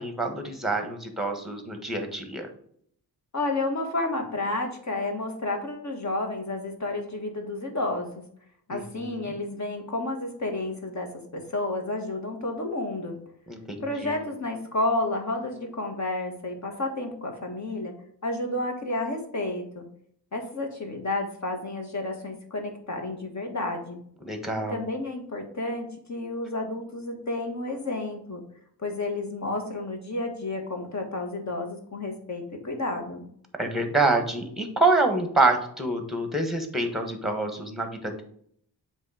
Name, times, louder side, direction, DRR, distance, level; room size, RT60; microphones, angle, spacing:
voice 1, 0.0-2.5 8.7-9.2 13.5-14.2 24.2-24.8 33.6-38.2, right 2 dB, ahead, 5 dB, 1.3 m, -26 dB
voice 2, 3.3-8.2 8.7-13.1 13.8-17.9 18.2-19.8 20.3-24.0 24.7-28.4 28.8-33.2, left 2 dB, 45° left, 3 dB, 1.5 m, -31 dB
7.5 x 3.2 x 4.9 m, 0.65 s
cardioid pair, 80°, 40 cm